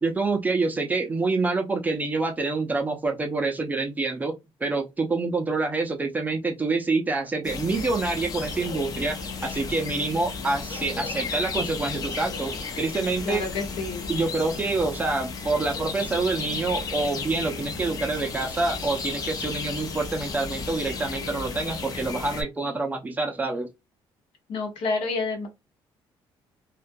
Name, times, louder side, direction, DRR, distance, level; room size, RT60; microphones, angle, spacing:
voice 1, 0.0-13.4 14.1-23.7, right 3 dB, 20° right, 0.5 m, -27 dB
sound 1, 7.4-22.4, left 4 dB, 40° left, 0.6 m, -34 dB
voice 2, 13.2-14.1 24.5-25.5, left 3 dB, 80° left, 0.9 m, -29 dB
2.3 x 2.2 x 2.5 m
cardioid pair, 135°, 9 cm